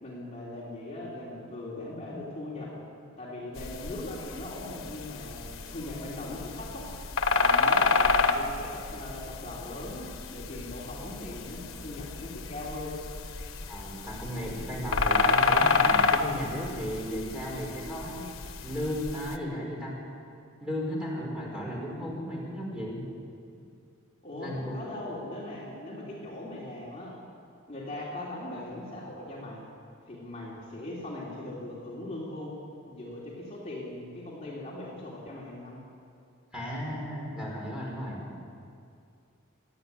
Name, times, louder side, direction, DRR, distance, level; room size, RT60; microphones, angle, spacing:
voice 1, 0.0-2.7 3.2-6.9 7.3-13.0 24.2-27.2 27.7-29.7 30.0-32.5 32.9-35.8, left 1 dB, 30° left, -6 dB, 3.3 m, -40 dB
sound 1, 3.6-19.4, left 4 dB, 80° left, 1.2 m, -29 dB
voice 2, 13.7-18.2 18.6-19.9 20.6-23.0 24.4-24.8 36.5-38.2, equal, 5° right, -4 dB, 5.2 m, -35 dB
26.0 x 10.0 x 9.9 m, 2.4 s
head